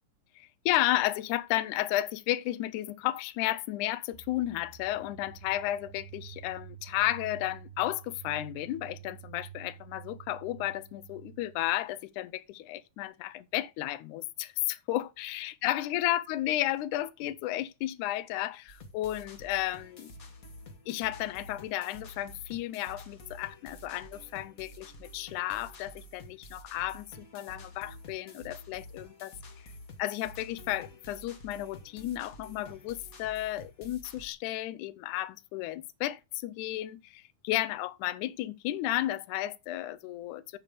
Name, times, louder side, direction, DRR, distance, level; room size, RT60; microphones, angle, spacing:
voice 1, 0.4-20.1 20.9-29.4 30.0-40.6, left 15 dB, 80° left, 2.0 m, -33 dB
sound 1, 4.1-11.9, right 10 dB, 90° right, 2.7 m, -49 dB
sound 2, 18.7-34.3, left 1 dB, 45° left, 1.1 m, -50 dB
8.5 x 6.0 x 5.1 m
omnidirectional pair, 3.8 m